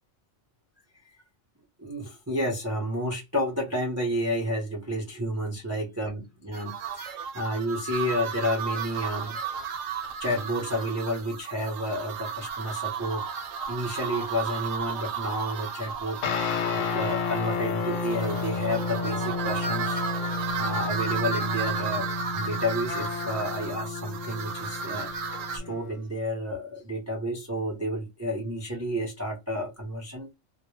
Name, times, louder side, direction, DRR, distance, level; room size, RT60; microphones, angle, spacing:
voice 1, 1.8-9.4 10.2-13.2 13.7-30.3, equal, 20° right, 0.4 m, -31 dB
sound 1, 6.5-25.6, right 5 dB, 85° right, 0.9 m, -34 dB
sound 2, 16.2-25.9, left 5 dB, 85° left, 1.0 m, -32 dB
2.1 x 2.0 x 3.0 m
omnidirectional pair, 1.3 m